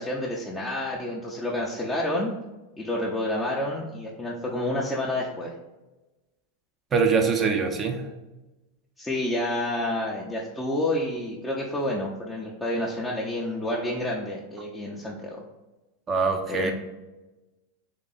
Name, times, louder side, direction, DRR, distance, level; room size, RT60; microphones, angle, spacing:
voice 1, 0.0-2.3 2.8-5.5 9.0-15.4 16.5-16.7, left 1 dB, 10° left, -5 dB, 0.7 m, -29 dB
voice 2, 6.9-8.1 16.1-16.7, right 5 dB, 25° right, 5 dB, 0.8 m, -23 dB
3.8 x 3.4 x 4.0 m, 1.1 s
hypercardioid pair, 115°, 0 cm